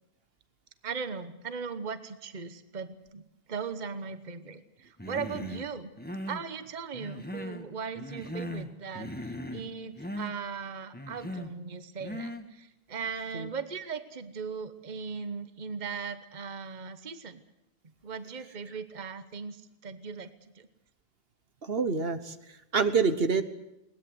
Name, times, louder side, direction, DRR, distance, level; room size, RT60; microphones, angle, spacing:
voice 1, 0.8-5.9 6.3-17.4 18.0-20.7, right 5 dB, 45° right, 11 dB, 1.2 m, -38 dB
Human voice, 5.0-5.7 6.0-6.5 6.9-7.7 8.0-8.7 9.0-9.7 10.0-10.3 10.9-11.5 12.0-12.5, left 1 dB, 10° left, 1.6 m, -38 dB
voice 2, 21.6-23.4, right 5 dB, 65° right, 10 dB, 1.4 m, -27 dB
21.5 x 19.5 x 8.0 m, 0.89 s
omnidirectional pair, 1.1 m